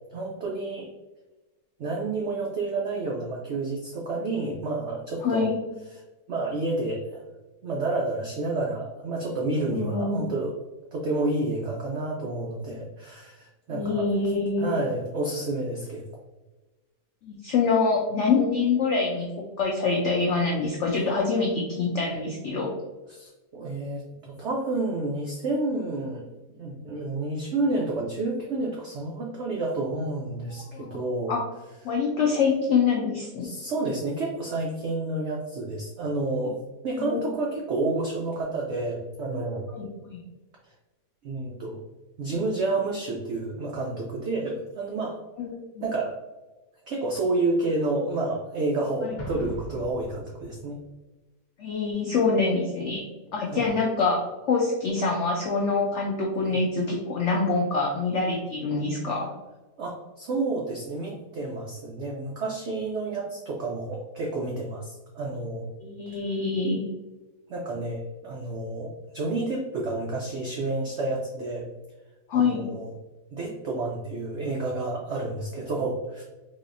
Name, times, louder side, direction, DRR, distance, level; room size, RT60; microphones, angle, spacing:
voice 1, 0.1-0.9 1.8-5.5 5.9-6.0 6.3-7.2 7.6-10.5 10.9-14.1 14.6-16.0 23.1-26.3 26.5-31.4 33.4-36.5 36.8-39.7 41.2-41.8 42.2-45.2 45.8-46.2 46.9-50.8 53.5-53.7 56.5-56.6 59.8-65.7 66.1-66.2 67.5-71.7 72.3-72.9 73.3-76.2, right 2 dB, 80° right, -1 dB, 0.6 m, -30 dB
voice 2, 5.2-5.6 9.7-10.2 13.7-14.7 17.2-19.3 19.6-22.7 30.7-31.0 31.3-31.4 31.8-33.5 37.0-37.2 39.7-40.2 45.4-45.8 49.0-49.1 51.6-53.1 53.3-59.3 65.8-66.9 72.3-72.7, left 4 dB, 80° left, 0 dB, 0.6 m, -25 dB
Explosion, 49.2-50.8, equal, 45° left, 1.0 m, -40 dB
3.9 x 2.8 x 2.5 m, 1.2 s
omnidirectional pair, 1.8 m